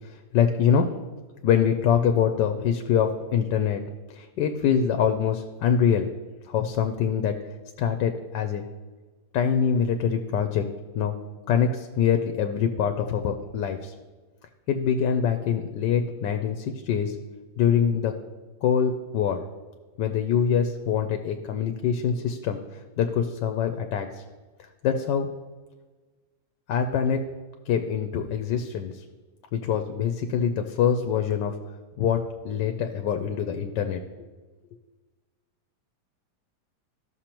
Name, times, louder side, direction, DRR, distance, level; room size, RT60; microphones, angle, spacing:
voice 1, 0.3-0.9 1.4-3.8 4.1-6.1 6.5-7.4 7.8-8.6 9.3-10.6 10.9-11.2 11.5-13.9 14.7-17.2 17.6-18.1 18.6-19.4 20.0-24.2 24.8-25.3 26.7-27.2 27.7-29.0 29.5-31.5 32.0-34.0, left 7 dB, 85° left, 6 dB, 1.3 m, -24 dB
14.5 x 6.5 x 3.0 m, 1.3 s
omnidirectional pair, 1.8 m